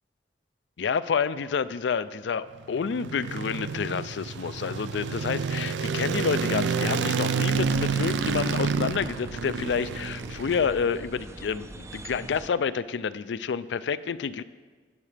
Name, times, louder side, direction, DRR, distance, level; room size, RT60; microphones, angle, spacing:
voice 1, 0.8-14.4, left 6 dB, 75° left, 15 dB, 0.4 m, -29 dB
sound 1, 2.6-11.0, right 5 dB, 90° right, 0.4 m, -29 dB
sound 2, 7.5-12.5, right 2 dB, 15° right, 0.4 m, -42 dB
18.5 x 7.4 x 3.4 m, 1.4 s
head